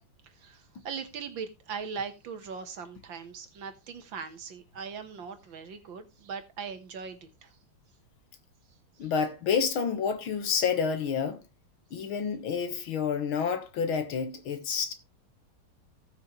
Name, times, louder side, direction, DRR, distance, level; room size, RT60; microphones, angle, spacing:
voice 1, 0.2-7.5 9.0-9.1, right 6 dB, 65° right, 1.9 m, -40 dB
voice 2, 9.0-11.4 11.9-14.9, left 6 dB, 70° left, 2.1 m, -29 dB
17.5 x 6.1 x 3.1 m
omnidirectional pair, 2.3 m